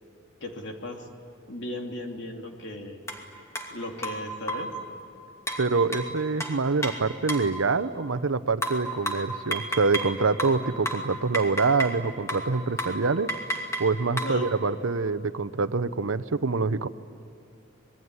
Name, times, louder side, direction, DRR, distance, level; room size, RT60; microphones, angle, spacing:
voice 1, 0.4-1.1 1.5-3.0 3.7-4.7 14.2-14.5, left 1 dB, 60° left, 2 dB, 3.0 m, -36 dB
sound 1, 3.1-3.2 3.5-3.7 4.0-4.8 5.5-7.6 8.6-10.1 10.4-12.0 12.3-12.5 12.8-13.0 13.3-14.4, equal, 15° left, 2.6 m, -32 dB
voice 2, 5.6-13.3 13.8-16.9, right 4 dB, 85° right, 13 dB, 0.8 m, -25 dB
26.5 x 21.5 x 9.7 m, 2.8 s
head